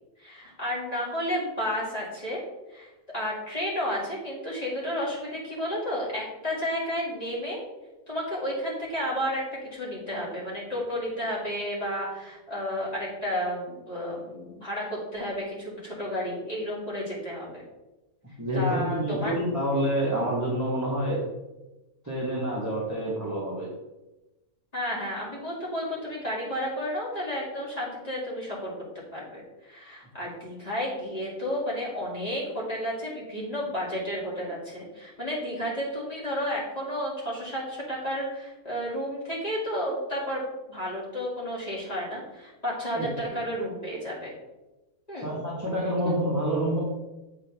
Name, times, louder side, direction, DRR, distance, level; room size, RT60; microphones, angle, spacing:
voice 1, 0.2-2.4 2.7-7.6 8.1-9.4 9.7-17.6 18.5-19.3 24.7-28.7 29.1-44.3 45.1-45.3 46.0-46.1, equal, 25° left, -6 dB, 2.2 m, -32 dB
voice 2, 18.4-21.3 22.0-23.7 42.9-43.1 45.2-46.8, right 1 dB, 15° right, -6 dB, 1.2 m, -27 dB
7.8 x 4.5 x 3.4 m, 1.0 s
omnidirectional pair, 1.6 m